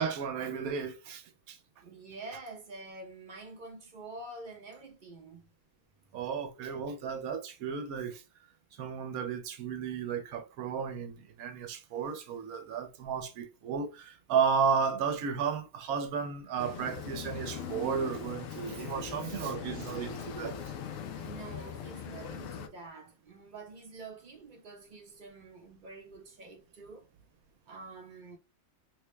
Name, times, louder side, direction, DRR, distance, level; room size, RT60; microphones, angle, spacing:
voice 1, 0.0-1.6 6.1-8.2 8.8-20.6, right 6 dB, 85° right, 1.1 m, -33 dB
voice 2, 1.8-5.5 21.1-27.1 27.7-28.4, right 3 dB, 45° right, 0.8 m, -47 dB
sound 1, 16.6-22.7, left 7 dB, 70° left, 0.9 m, -40 dB
3.4 x 2.1 x 3.1 m
omnidirectional pair, 1.5 m